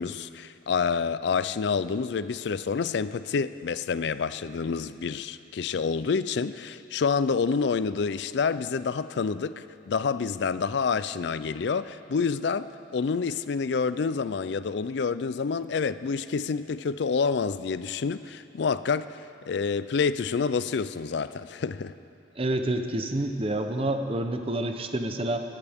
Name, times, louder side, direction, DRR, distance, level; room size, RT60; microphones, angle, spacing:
voice 1, 0.0-19.2 19.5-21.9, left 5 dB, 60° left, 15 dB, 0.4 m, -28 dB
voice 2, 22.4-25.4, right 1 dB, 30° right, 6 dB, 0.7 m, -28 dB
20.0 x 15.0 x 3.6 m, 2.7 s
head